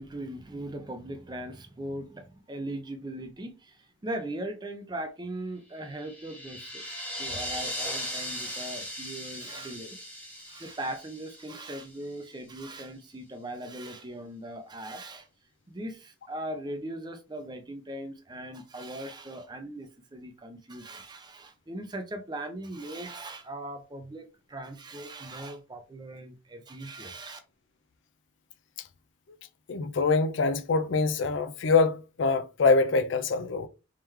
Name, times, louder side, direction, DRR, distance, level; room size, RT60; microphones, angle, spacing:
voice 1, 0.0-10.1 10.3-15.3 15.7-27.4, right 1 dB, 20° right, 0.5 m, -39 dB
sound 1, 5.8-12.0, equal, 10° left, 1.1 m, -38 dB
voice 2, 29.7-33.7, left 4 dB, 70° left, 0.5 m, -24 dB
3.7 x 3.0 x 3.2 m
head